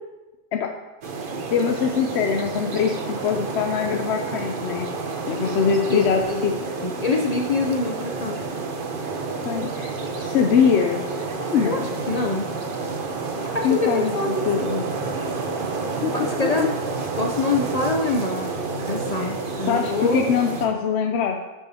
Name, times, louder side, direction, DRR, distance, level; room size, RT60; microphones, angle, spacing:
sound 1, 1.0-20.7, right 4 dB, 55° right, 1.0 m, -29 dB
voice 1, 1.5-4.9 5.3-6.5 9.4-11.2 11.5-12.0 13.6-14.1 14.5-14.8 16.0-16.7 19.2-19.3 19.6-21.4, left 7 dB, 75° left, 4 dB, 0.8 m, -23 dB
voice 2, 5.9-6.5 6.8-8.4 11.6-11.8 12.1-12.5 13.5-14.7 16.1-16.7 17.2-18.5 18.9-20.3, left 3 dB, 45° left, 1 dB, 0.6 m, -25 dB
11.5 x 7.1 x 2.8 m, 1.2 s
omnidirectional pair, 1.1 m